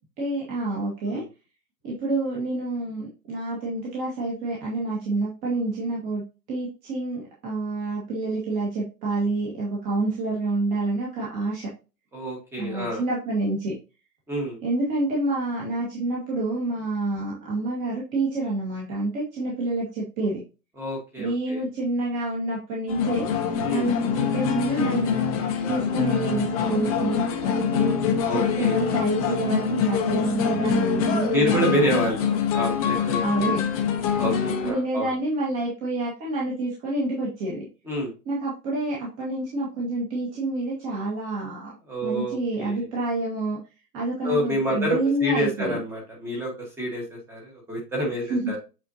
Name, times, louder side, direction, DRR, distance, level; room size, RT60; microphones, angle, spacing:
voice 1, 0.2-1.2 1.8-6.2 6.5-11.7 12.6-13.7 14.6-20.4 21.2-23.2 23.6-25.3 25.7-27.9 28.3-31.9 32.2-32.3 33.2-33.6 34.6-37.7 38.2-41.7 42.0-43.6 43.9-45.8 48.3-48.6, right 2 dB, 20° right, -4 dB, 1.6 m, -28 dB
voice 2, 12.1-13.0 14.3-14.6 20.8-21.6 23.6-23.9 28.2-28.8 31.3-32.3 32.5-33.5 34.2-35.1 37.8-38.1 41.9-42.8 44.2-48.6, equal, 5° right, 0 dB, 1.4 m, -28 dB
sound 1, 22.9-34.7, left 7 dB, 20° left, 0.9 m, -25 dB
8.1 x 4.4 x 2.7 m, 0.30 s
hypercardioid pair, 165°, 48 cm